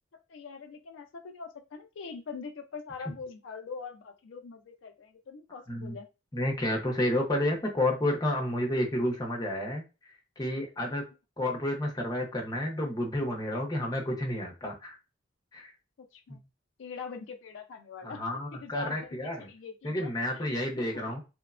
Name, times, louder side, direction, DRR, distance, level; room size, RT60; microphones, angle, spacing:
voice 1, 0.3-6.1 16.1-16.4 16.8-18.2 18.5-21.2, left 5 dB, 75° left, 6 dB, 0.4 m, -43 dB
voice 2, 6.3-11.0 11.4-15.0 15.5-15.7 16.3-16.4 18.0-19.5 19.8-21.2, left 1 dB, 20° left, 1 dB, 0.6 m, -30 dB
3.0 x 2.1 x 2.4 m, 0.29 s
head